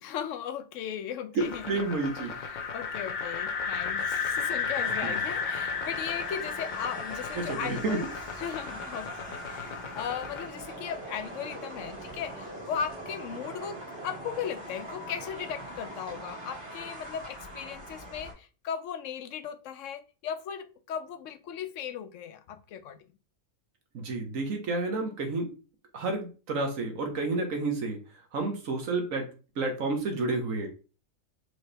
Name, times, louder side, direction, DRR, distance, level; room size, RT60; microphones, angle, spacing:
voice 1, 0.0-1.8 2.5-8.1 8.3-13.8 14.0-23.0, left 8 dB, 75° left, 10 dB, 0.9 m, -37 dB
voice 2, 1.3-2.3 5.0-5.1 7.3-8.0 23.9-25.5 25.9-28.0 28.3-29.3 29.6-30.7, right 3 dB, 85° right, 4 dB, 1.5 m, -30 dB
sound 1, 1.4-10.5, left 5 dB, 55° left, 0.5 m, -34 dB
sound 2, 4.8-18.3, right 1 dB, 60° right, 2.4 m, -42 dB
4.7 x 3.1 x 3.2 m, 0.35 s
omnidirectional pair, 1.3 m